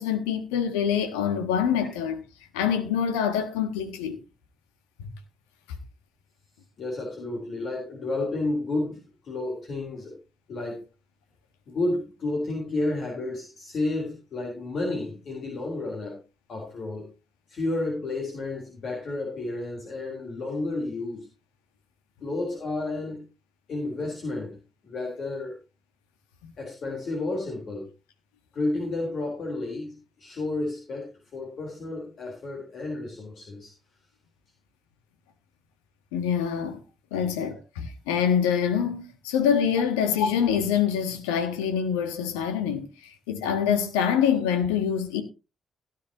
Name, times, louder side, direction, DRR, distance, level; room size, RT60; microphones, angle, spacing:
voice 1, 0.0-2.2 2.5-4.2 5.0-5.1 26.4-26.5 36.1-36.8 37.1-45.2, left 8 dB, 85° left, 1.3 m, -25 dB
voice 2, 6.8-9.0 9.2-10.2 10.5-10.8 11.7-16.2 16.5-17.1 17.5-21.3 22.2-23.2 23.7-24.6 24.8-25.6 26.6-27.9 28.5-33.7 37.1-37.2, left 2 dB, 60° left, 3.9 m, -31 dB
17.0 x 9.7 x 2.9 m
hypercardioid pair, 40°, 0 cm